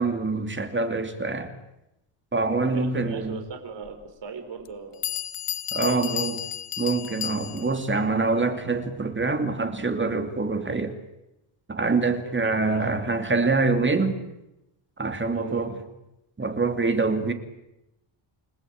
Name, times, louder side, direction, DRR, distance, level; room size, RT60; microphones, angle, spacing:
voice 1, 0.0-1.5 2.3-3.4 5.7-6.4 6.8-11.0 11.7-14.2 15.0-15.8 16.4-17.3, right 3 dB, 25° right, 8 dB, 2.7 m, -25 dB
voice 2, 2.6-5.0 5.8-6.3 12.4-12.9 15.3-15.7, right 5 dB, 55° right, 5 dB, 4.4 m, -38 dB
Bell, 3.9-4.0 4.7-4.8 5.0-7.8, left 11 dB, 80° left, 1.3 m, -32 dB
29.5 x 19.5 x 8.8 m, 0.89 s
wide cardioid pair, 150°, 50 cm